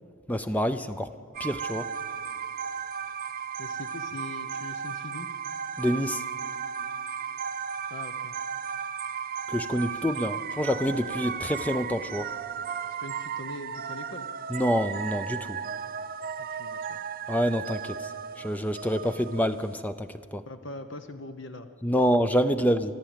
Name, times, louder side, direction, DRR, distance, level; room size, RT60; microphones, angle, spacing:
voice 1, 0.3-1.1 1.4-1.9 5.8-6.2 9.5-12.3 14.5-15.6 17.3-20.4 21.8-23.0, equal, 5° left, 10 dB, 0.5 m, -27 dB
sound 1, 1.3-19.7, right 7 dB, 45° right, 0.7 m, -35 dB
voice 2, 3.6-5.3 7.9-8.3 13.0-14.3 16.4-17.0 20.5-21.7, left 2 dB, 60° left, 7 dB, 0.9 m, -41 dB
24.5 x 14.0 x 9.1 m, 2.4 s
head